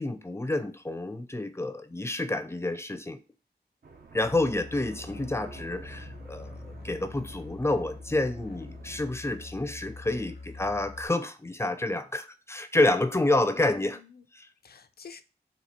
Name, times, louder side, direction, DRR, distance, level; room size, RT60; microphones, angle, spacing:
voice 1, 0.0-3.2 4.1-6.5 6.8-14.0 14.3-14.5, left 2 dB, 15° left, 0.5 m, -28 dB
sound 1, 3.8-9.0, right 3 dB, 70° right, 0.9 m, -50 dB
Musical instrument, 4.2-11.1, left 3 dB, 85° left, 0.9 m, -44 dB
voice 2, 13.1-14.2 14.6-15.2, left 5 dB, 65° left, 0.5 m, -47 dB
4.2 x 2.8 x 4.3 m
wide cardioid pair, 95°, 17 cm